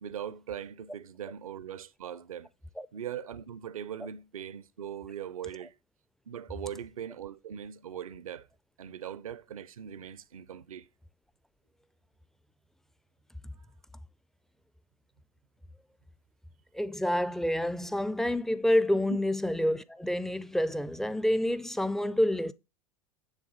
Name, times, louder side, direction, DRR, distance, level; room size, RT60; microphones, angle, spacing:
voice 1, 0.0-2.5 2.9-5.7 6.3-8.5 8.8-10.9 19.1-19.2, right 9 dB, 70° right, 0.6 m, -40 dB
voice 2, 16.7-22.5, left 1 dB, ahead, 0.4 m, -28 dB
9.9 x 3.6 x 6.0 m
figure-of-eight pair, 85°, 19 cm